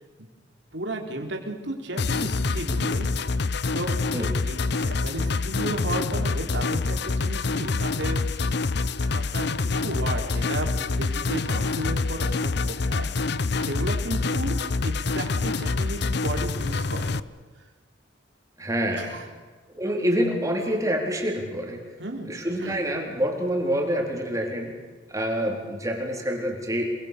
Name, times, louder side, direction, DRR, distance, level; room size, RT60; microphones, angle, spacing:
voice 1, 0.7-3.1 3.7-3.9 4.5-8.5 9.1-9.5 9.7-13.1 13.6-14.6 14.8-17.1 18.9-19.3 22.0-22.3 22.6-22.8, right 1 dB, 65° right, 2 dB, 4.3 m, -34 dB
sound 1, 2.0-17.2, left 3 dB, 60° left, 0.8 m, -26 dB
voice 2, 18.6-19.1 19.8-21.8 22.2-24.7 25.1-27.0, equal, 15° right, 0 dB, 4.1 m, -26 dB
29.5 x 21.5 x 7.0 m, 1.4 s
head